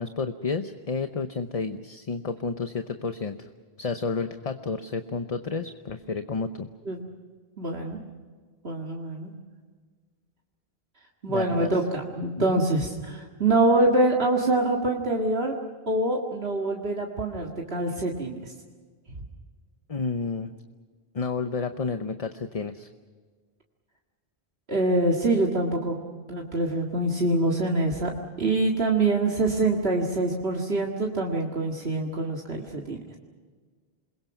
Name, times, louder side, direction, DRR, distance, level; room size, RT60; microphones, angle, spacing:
voice 1, 0.0-3.5 3.8-6.7 11.3-11.7 12.5-12.6 19.9-20.5 21.1-22.9, left 4 dB, 40° left, 8 dB, 0.9 m, -31 dB
voice 2, 7.6-8.0 8.6-9.3 11.2-15.5 15.9-18.5 24.7-26.0 26.3-28.1 28.4-33.0, right 2 dB, 75° right, -1 dB, 2.2 m, -25 dB
28.0 x 22.0 x 6.0 m, 1.5 s
omnidirectional pair, 1.0 m